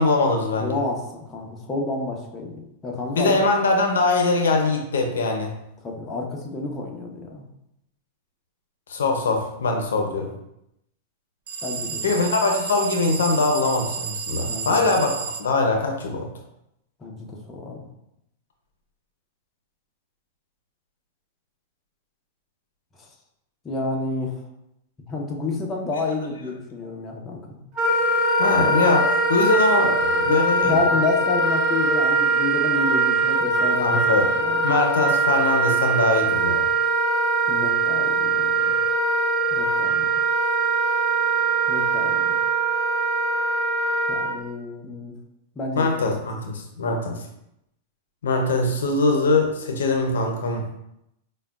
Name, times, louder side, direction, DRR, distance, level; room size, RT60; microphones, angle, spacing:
voice 1, 0.0-0.8 3.1-5.5 8.9-10.3 12.0-16.3 28.4-30.7 33.8-34.3 34.6-36.6 45.8-47.2 48.2-50.7, left 3 dB, 90° left, 3 dB, 0.5 m, -22 dB
voice 2, 0.5-3.4 5.8-7.4 11.6-12.2 14.4-14.9 17.0-17.8 23.6-24.4 25.1-27.6 30.6-34.0 34.4-34.6 37.5-38.5 39.5-40.1 41.7-42.4 44.1-45.1 45.6-45.9, left 3 dB, 20° left, -1 dB, 0.7 m, -29 dB
sound 1, 11.5-15.5, right 6 dB, 70° right, 0.4 m, -31 dB
Wind instrument woodwind instrument, 27.8-44.3, right 3 dB, 35° right, 1.1 m, -22 dB
4.8 x 2.2 x 2.3 m, 0.82 s
hypercardioid pair, 125°, 0 cm